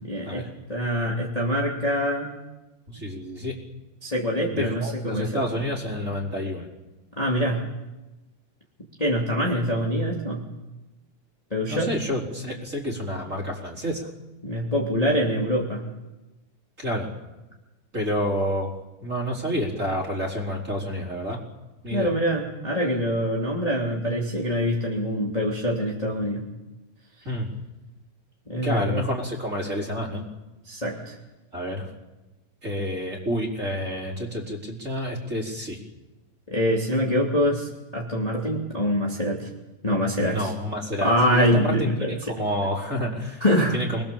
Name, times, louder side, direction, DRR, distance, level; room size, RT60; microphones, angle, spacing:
voice 1, 0.0-2.3 4.0-5.4 7.1-7.6 9.0-10.4 11.5-11.9 14.4-15.8 21.9-26.4 28.5-29.1 30.6-31.1 36.5-39.5 39.8-40.5 41.0-42.3 43.4-43.8, equal, 15° left, -3 dB, 1.6 m, -24 dB
voice 2, 2.9-3.5 4.5-6.7 11.7-14.1 16.8-17.1 17.9-18.7 19.0-21.4 21.8-22.1 27.2-27.5 28.6-30.2 31.5-31.9 32.6-35.8 40.2-43.4 43.7-44.0, equal, 15° right, -1 dB, 4.1 m, -29 dB
28.0 x 21.0 x 7.3 m, 1.1 s
omnidirectional pair, 5.8 m